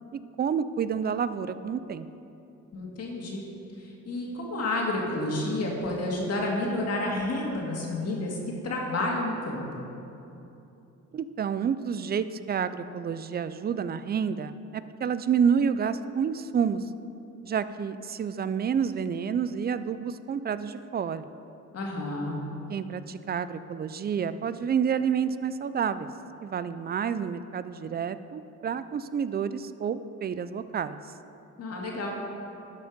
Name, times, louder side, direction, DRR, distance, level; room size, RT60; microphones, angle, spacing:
voice 1, 0.4-2.1 11.1-16.8 17.4-21.3 22.7-26.1 26.4-31.0, right 7 dB, 35° right, 13 dB, 0.4 m, -29 dB
voice 2, 2.7-3.4 3.8-8.4 8.6-9.6 21.7-22.4 31.6-32.1, left 2 dB, 55° left, -2 dB, 2.0 m, -30 dB
11.5 x 5.3 x 5.2 m, 2.8 s
cardioid pair, 90°, 30 cm